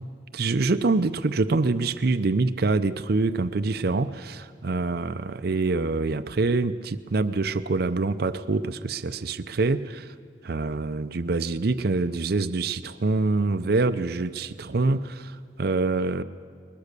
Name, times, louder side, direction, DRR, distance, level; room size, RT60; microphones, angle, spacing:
voice 1, 0.3-10.1 10.4-16.2, right 3 dB, 60° right, 0.6 m, -25 dB
21.5 x 21.0 x 6.7 m
head